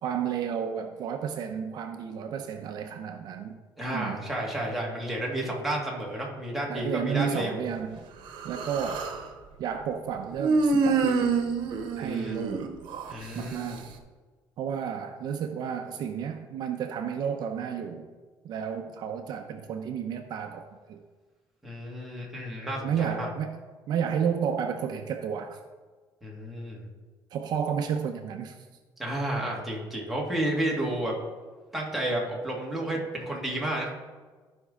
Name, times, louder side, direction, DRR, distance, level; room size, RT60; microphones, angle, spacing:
voice 1, 0.0-3.6 3.9-4.2 6.7-8.0 8.4-9.1 9.6-11.4 12.0-12.7 13.3-13.9 14.6-18.1 18.4-21.0 22.8-23.6 23.9-25.6 27.3-28.6, right 7 dB, 60° right, 6 dB, 0.7 m, -32 dB
voice 2, 3.8-7.6 12.0-12.4 13.1-13.8 21.6-23.3 26.2-26.9 29.0-31.1 31.7-33.9, right 1 dB, ahead, -3 dB, 1.8 m, -31 dB
Human voice, 8.3-9.2 10.4-13.1, right 4 dB, 75° right, 1.0 m, -26 dB
14.5 x 5.3 x 3.7 m, 1.4 s
cardioid pair, 155°, 8 cm